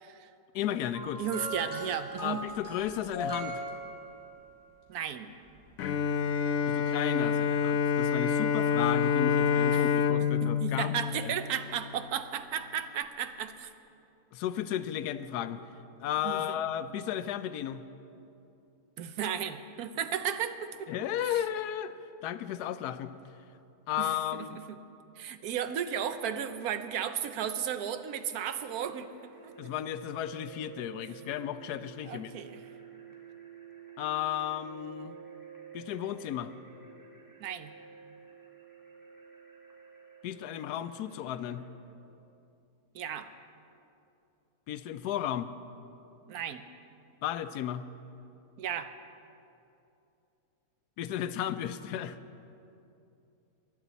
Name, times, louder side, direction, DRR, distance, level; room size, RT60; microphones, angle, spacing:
voice 1, 0.5-1.2 2.2-3.6 6.7-10.9 11.2-11.3 14.3-15.6 16.0-17.8 20.9-21.9 22.2-23.1 23.9-24.6 29.6-32.3 34.0-35.1 35.7-36.5 40.2-41.6 44.7-45.5 47.2-47.8 51.0-52.2, left 11 dB, 90° left, 12 dB, 1.1 m, -34 dB
sound 1, 0.9-4.5 5.5-5.7, equal, 40° right, 2.9 m, -39 dB
voice 2, 1.2-2.4 4.9-5.3 9.7-9.8 10.2-13.7 16.2-16.6 19.0-20.7 21.3-21.4 24.0-24.1 24.7-24.8 25.2-29.1 29.4-29.7 32.1-32.6 37.4-37.7 42.9-43.3 46.3-46.6 48.6-48.9, right 8 dB, 75° right, 10 dB, 1.2 m, -34 dB
Bowed string instrument, 5.8-12.0, left 6 dB, 70° left, 1.0 m, -27 dB
sound 2, 28.6-41.7, right 7 dB, 10° right, 2.4 m, -51 dB
20.0 x 11.0 x 4.1 m, 2.7 s
omnidirectional pair, 1.6 m